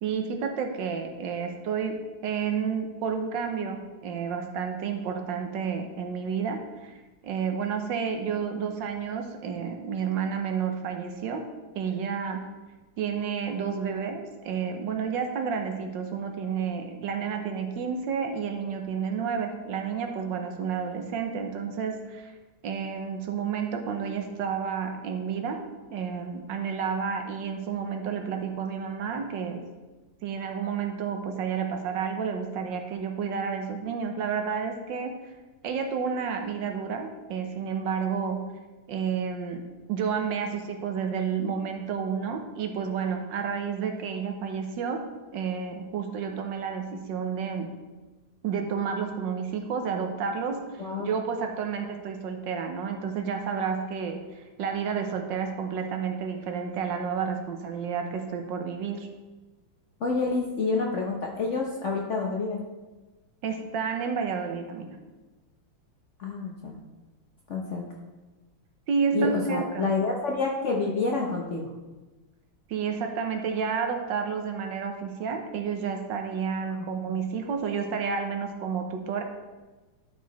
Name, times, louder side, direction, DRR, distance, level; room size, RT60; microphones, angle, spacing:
voice 1, 0.0-7.0 7.2-11.5 11.7-12.5 13.0-22.3 22.6-25.6 25.9-29.7 30.2-35.2 35.6-38.5 38.9-39.6 39.9-45.0 45.3-47.7 48.4-59.1 63.4-65.0 68.9-69.9 72.7-79.2, right 6 dB, 75° right, 5 dB, 1.5 m, -30 dB
voice 2, 60.0-62.6 66.2-66.8 67.5-67.8 69.1-71.7 76.7-76.9, left 4 dB, 55° left, -1 dB, 0.8 m, -28 dB
11.5 x 4.6 x 4.0 m, 1.2 s
omnidirectional pair, 2.1 m